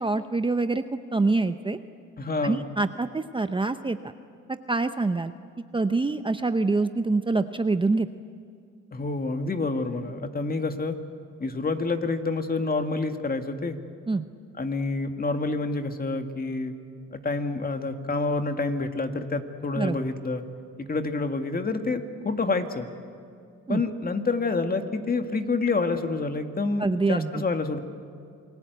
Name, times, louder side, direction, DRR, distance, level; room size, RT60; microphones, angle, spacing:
voice 1, 0.0-1.8 2.4-4.0 4.7-5.3 5.7-8.1 14.1-14.2 19.8-20.0 23.7-23.8 26.8-27.4, right 3 dB, 15° right, 9 dB, 0.8 m, -25 dB
voice 2, 2.2-2.6 8.9-11.0 11.4-13.8 14.6-16.7 17.1-20.4 20.8-22.9 23.7-27.8, left 3 dB, 30° left, 6 dB, 2.0 m, -28 dB
28.5 x 20.5 x 8.1 m, 2.4 s
cardioid pair, 90°, 30 cm